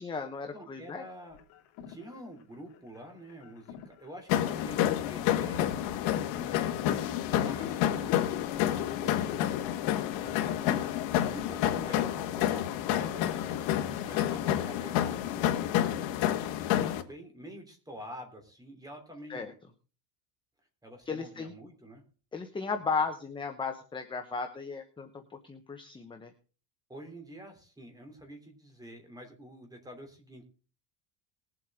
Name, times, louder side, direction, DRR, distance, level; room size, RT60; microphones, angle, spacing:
voice 1, 0.0-1.0 10.2-10.8 19.3-19.5 21.1-21.5 22.3-25.1 25.4-26.3, left 4 dB, 10° left, 5 dB, 1.0 m, -35 dB
voice 2, 0.5-1.4 1.9-5.9 6.3-6.9 7.4-9.5 10.5-15.5 15.8-16.1 17.0-19.5 20.8-22.0 26.9-30.4, equal, 10° right, 4 dB, 3.2 m, -47 dB
sound 1, 1.3-13.8, left 10 dB, 80° left, 2.6 m, -46 dB
sound 2, 4.3-17.0, left 11 dB, 60° left, 1.7 m, -29 dB
20.0 x 7.8 x 3.7 m, 0.37 s
cardioid pair, 160°, 48 cm